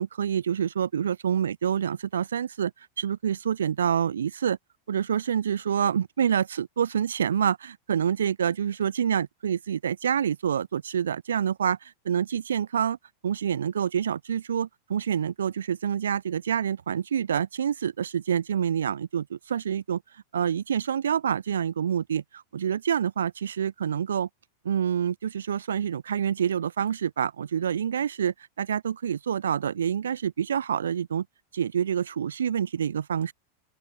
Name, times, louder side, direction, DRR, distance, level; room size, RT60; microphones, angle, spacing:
voice 1, 0.0-2.7 3.0-4.6 4.9-13.0 13.2-20.0 20.3-24.3 24.6-31.3 31.5-33.3, right 8 dB, 65° right, 1.9 m, -27 dB
open air
figure-of-eight pair, 90°, 0 cm